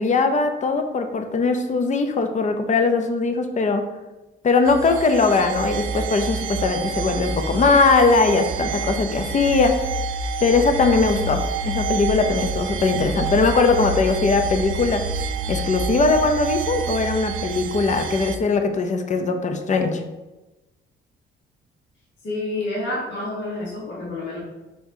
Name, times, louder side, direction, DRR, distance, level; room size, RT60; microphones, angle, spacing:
voice 1, 0.0-3.8 4.4-9.8 10.4-15.0 15.5-20.0, left 4 dB, 35° left, 6 dB, 0.6 m, -20 dB
sound 1, 4.7-18.4, right 4 dB, 80° right, 0.4 m, -28 dB
voice 2, 22.2-24.4, left 2 dB, 65° left, -6 dB, 1.4 m, -28 dB
4.4 x 4.3 x 2.7 m, 1.1 s
cardioid pair, 90°, 20 cm